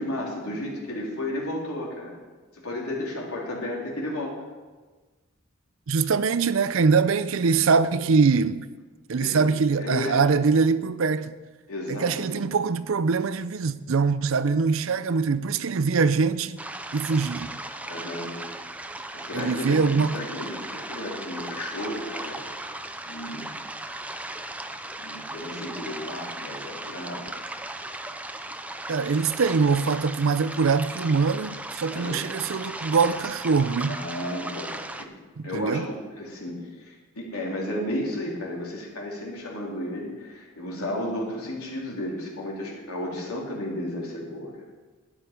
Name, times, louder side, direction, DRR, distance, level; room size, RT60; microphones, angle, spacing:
voice 1, 0.0-2.2 2.5-4.4 9.1-9.4 9.8-10.2 11.7-12.5 17.8-18.4 19.1-22.8 23.0-23.5 24.9-27.3 31.9-32.2 33.9-35.1 35.4-44.5, left 1 dB, 85° left, 3.5 m, -33 dB
voice 2, 5.9-8.6 9.1-11.3 11.9-16.6 16.9-17.5 19.3-20.2 28.9-34.0 35.5-35.9, right 5 dB, 65° right, 0.5 m, -23 dB
sound 1, 16.6-35.1, right 2 dB, 5° right, 0.5 m, -37 dB
12.5 x 10.5 x 5.2 m
head